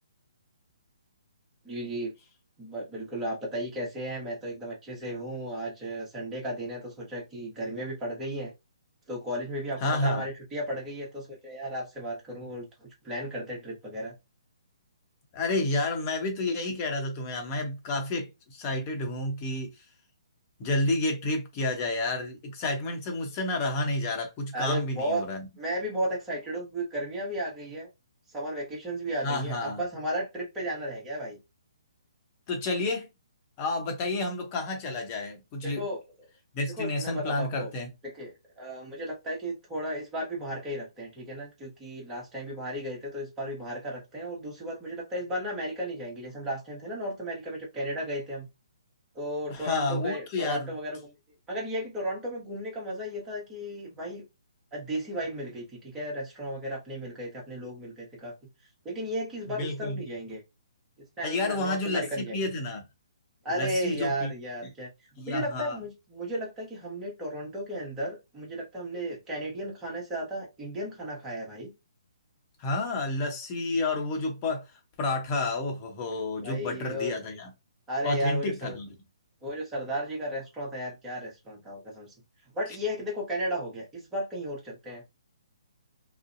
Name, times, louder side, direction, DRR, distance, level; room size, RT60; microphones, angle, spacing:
voice 1, 1.6-2.1 2.6-8.5 9.1-14.1 24.5-25.2 25.6-27.9 28.3-31.4 35.6-36.0 36.7-37.7 38.0-48.5 49.1-51.0 51.5-54.2 54.7-58.3 58.8-60.4 61.2-62.5 63.4-64.9 65.3-71.7 76.4-77.1 77.9-78.8 79.4-82.1 82.5-85.0, equal, 15° right, 1.0 m, -34 dB
voice 2, 9.8-10.2 15.3-19.7 20.6-25.5 29.2-29.8 32.5-33.1 33.6-35.8 36.5-37.9 49.5-50.7 59.5-60.0 61.2-62.9 63.5-64.3 65.2-65.8 72.6-74.6 75.0-77.5 78.0-78.9, left 2 dB, 30° left, 0.8 m, -30 dB
2.6 x 2.0 x 2.6 m
figure-of-eight pair, 140°, 3 cm